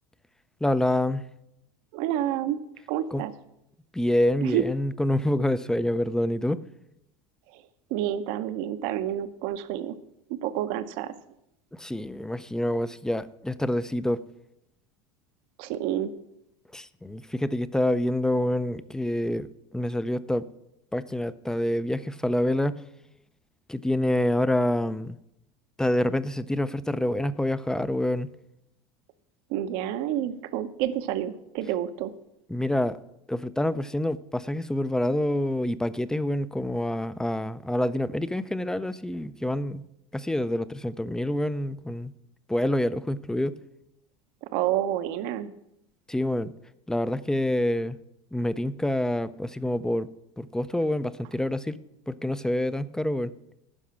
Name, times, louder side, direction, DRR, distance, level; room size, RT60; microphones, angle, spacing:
voice 1, 0.6-1.2 3.1-3.2 3.9-6.6 11.7-14.2 16.7-20.5 20.9-22.8 23.7-25.2 25.8-28.3 32.5-33.0 33.3-39.8 40.1-42.1 42.5-43.6 46.1-46.5 46.9-48.0 48.3-50.1 50.4-51.8 52.1-53.3, left 1 dB, 5° left, 0.4 m, -27 dB
voice 2, 1.9-2.6 2.9-3.3 4.4-4.6 7.5-7.6 7.9-10.0 10.3-11.1 15.6-16.1 29.5-32.1 44.4-45.5, right 11 dB, 65° right, 0.7 m, -29 dB
11.5 x 4.9 x 7.4 m
supercardioid pair, 105°, 15 cm